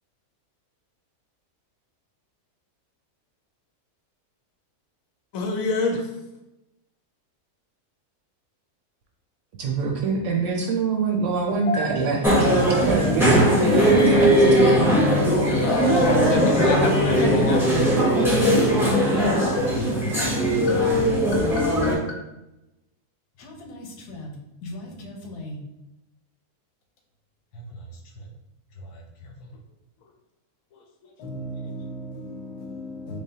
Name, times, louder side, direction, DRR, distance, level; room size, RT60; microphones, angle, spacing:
voice 1, 5.3-6.1 15.4-17.7, left 3 dB, 70° left, 1.0 m, -26 dB
voice 2, 9.6-14.8, right 4 dB, 65° right, 0.8 m, -25 dB
sound 1, 12.2-21.9, equal, ahead, 0.6 m, -19 dB
voice 3, 18.2-18.5 18.9-19.6 23.4-24.3 24.6-25.6 27.5-27.6 28.8-29.0 31.2-33.2, left 2 dB, 85° left, 1.3 m, -33 dB
4.0 x 3.2 x 2.8 m
omnidirectional pair, 1.6 m